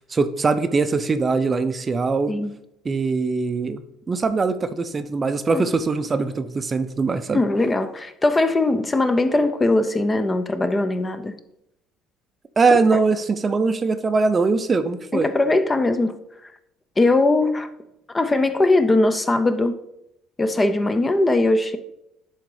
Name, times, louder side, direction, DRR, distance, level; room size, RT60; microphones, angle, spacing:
voice 1, 0.0-2.3 2.8-3.8 4.1-7.4 12.6-15.3, right 4 dB, 25° right, 0.5 m, -21 dB
voice 2, 7.3-11.4 12.9-13.0 15.1-16.2 17.0-17.7 18.1-19.8 20.4-21.8, left 2 dB, 20° left, 0.6 m, -20 dB
10.5 x 3.7 x 4.8 m
cardioid pair, 110°, 0 cm